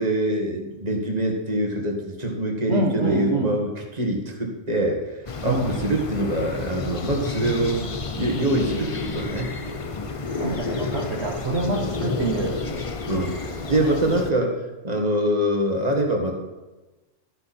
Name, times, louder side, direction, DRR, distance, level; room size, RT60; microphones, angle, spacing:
voice 1, 0.0-3.7 3.9-5.0 5.4-7.8 8.2-9.6 13.1-14.6 14.8-16.3, right 1 dB, 30° right, 1 dB, 2.0 m, -24 dB
voice 2, 2.7-3.6 5.5-5.8 10.4-12.6, right 2 dB, 55° right, -1 dB, 1.6 m, -26 dB
sound 1, 5.3-14.3, left 4 dB, 35° left, 0.6 m, -30 dB
13.0 x 10.5 x 4.4 m, 1.1 s
omnidirectional pair, 1.3 m